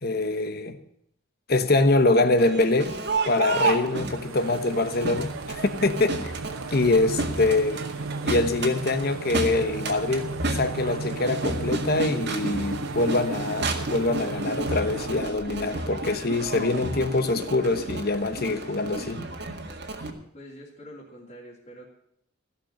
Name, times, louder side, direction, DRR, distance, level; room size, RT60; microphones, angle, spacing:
voice 1, 0.0-0.8 1.5-2.9 3.3-6.3 6.7-7.8 8.2-19.2, left 2 dB, 50° left, 1.1 m, -24 dB
Crowd, 2.3-20.1, right 2 dB, 55° right, 1.9 m, -32 dB
sound 1, 3.8-15.3, right 4 dB, 85° right, 0.7 m, -35 dB
voice 2, 20.3-21.9, equal, 30° left, 2.9 m, -45 dB
16.0 x 6.6 x 9.9 m
head